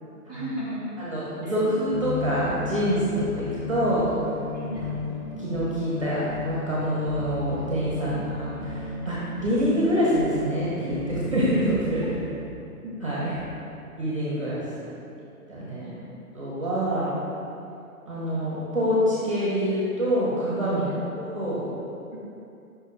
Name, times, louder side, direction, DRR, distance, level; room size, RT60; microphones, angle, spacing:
voice 1, 0.0-1.1 1.4-1.5 3.4-3.5 4.5-4.9 15.8-16.0 20.9-21.0 22.1-22.2, equal, 30° left, -9 dB, 0.6 m, -36 dB
voice 2, 1.0-4.1 5.4-12.1 12.8-13.4 14.0-14.6 15.5-15.9 16.3-17.1 18.1-20.9 21.1-21.7, equal, 20° right, -7 dB, 0.7 m, -26 dB
sound 1, 1.9-12.4, left 3 dB, 50° left, 1.0 m, -34 dB
5.5 x 4.4 x 4.2 m, 2.7 s
hypercardioid pair, 175°, 46 cm